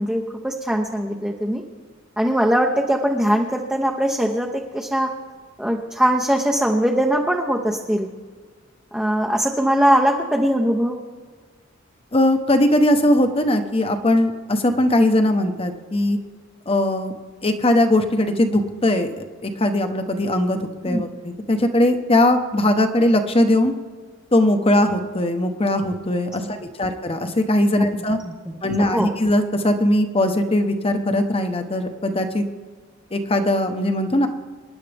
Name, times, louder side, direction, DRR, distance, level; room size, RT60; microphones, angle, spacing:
voice 1, 0.0-1.6 2.2-5.1 5.6-8.1 8.9-11.0 20.8-21.1 26.4-26.5 28.2-28.3 28.8-29.1, equal, 5° right, 0 dB, 0.8 m, -21 dB
voice 2, 12.1-16.2 16.7-17.1 17.4-23.7 24.3-28.2 28.6-32.4 33.1-34.3, left 1 dB, 30° left, 7 dB, 1.0 m, -20 dB
26.0 x 10.5 x 3.5 m, 1.5 s
head